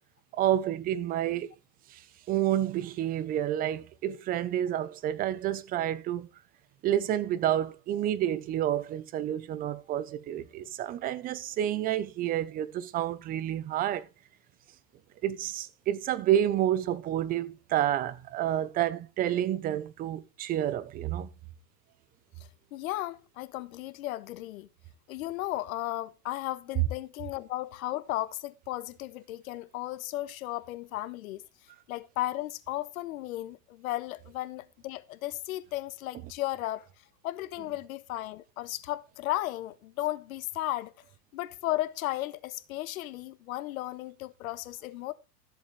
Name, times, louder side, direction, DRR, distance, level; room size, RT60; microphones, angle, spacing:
voice 1, 0.3-1.5 1.9-2.0 2.3-6.3 6.8-14.1 15.2-21.3, right 11 dB, 20° right, 0.6 m, -29 dB
voice 2, 22.7-24.7 25.1-31.4 31.9-36.9 37.2-40.9 41.3-45.1, left 16 dB, 60° left, 1.1 m, -35 dB
13.5 x 7.6 x 3.2 m
hypercardioid pair, 135°, 47 cm